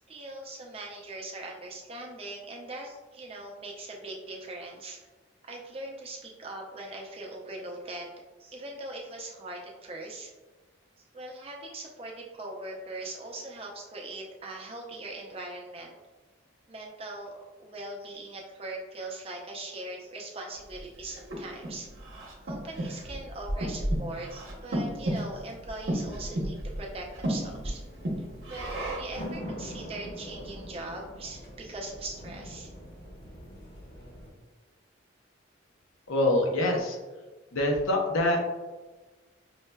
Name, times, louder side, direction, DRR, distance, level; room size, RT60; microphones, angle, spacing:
voice 1, 0.1-5.0 5.4-8.1 8.4-10.3 11.1-15.9 16.7-21.9 22.4-27.8 28.5-32.7, right 2 dB, 30° right, -1 dB, 0.5 m, -41 dB
Breathing, 20.7-29.2, right 1 dB, 70° right, 0.8 m, -33 dB
sound 1, 26.9-34.3, equal, 50° left, 1.2 m, -43 dB
voice 2, 36.1-37.0 37.5-38.4, left 1 dB, 90° left, 1 dB, 0.6 m, -25 dB
5.4 x 2.1 x 2.2 m, 1.2 s
head